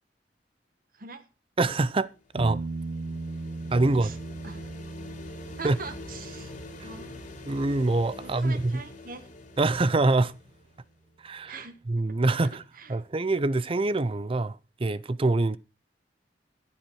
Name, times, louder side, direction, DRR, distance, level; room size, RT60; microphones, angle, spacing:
voice 1, 0.9-1.2 4.0-4.2 4.4-4.7 5.6-6.5 6.8-7.2 8.2-9.3 11.5-11.7 12.4-13.0, right 3 dB, 55° right, 1.5 m, -42 dB
voice 2, 1.6-2.1 2.3-2.6 3.7-4.1 5.6-5.8 7.5-8.8 9.6-10.3 11.2-11.5 11.9-12.6 12.9-14.6 14.8-15.6, right 2 dB, 30° right, 0.5 m, -24 dB
sound 1, 2.0-10.8, left 2 dB, 45° left, 2.5 m, -45 dB
sound 2, 2.4-10.0 13.0-13.1, right 3 dB, 75° right, 0.8 m, -39 dB
14.5 x 8.9 x 4.8 m
head